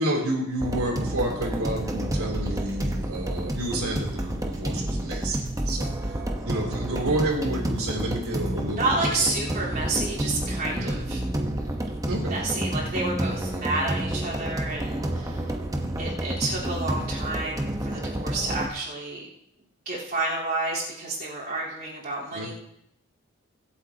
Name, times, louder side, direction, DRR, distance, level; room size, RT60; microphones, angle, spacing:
voice 1, 0.0-6.1 6.4-9.3 10.7-11.0 12.0-12.4 22.3-22.5, right 1 dB, 80° right, -1 dB, 3.3 m, -30 dB
sound 1, 0.6-18.7, right 1 dB, 15° right, 1.0 m, -29 dB
voice 2, 8.8-11.2 12.3-15.4 16.0-19.3 19.9-22.5, right 2 dB, 45° right, -7 dB, 3.7 m, -30 dB
24.0 x 8.2 x 2.9 m, 0.77 s
head